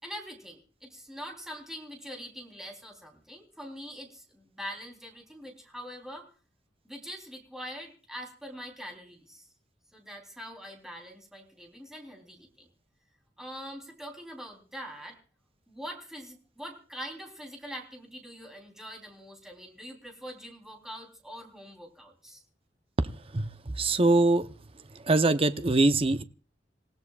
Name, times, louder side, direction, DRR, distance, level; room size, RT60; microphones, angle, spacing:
voice 1, 0.0-6.3 6.8-9.5 9.9-12.7 13.4-15.2 15.7-22.4, equal, 5° right, 1 dB, 3.5 m, -43 dB
voice 2, 23.3-24.5 24.9-26.2, right 2 dB, 35° right, 11 dB, 0.7 m, -23 dB
27.0 x 16.5 x 2.4 m, 0.38 s
head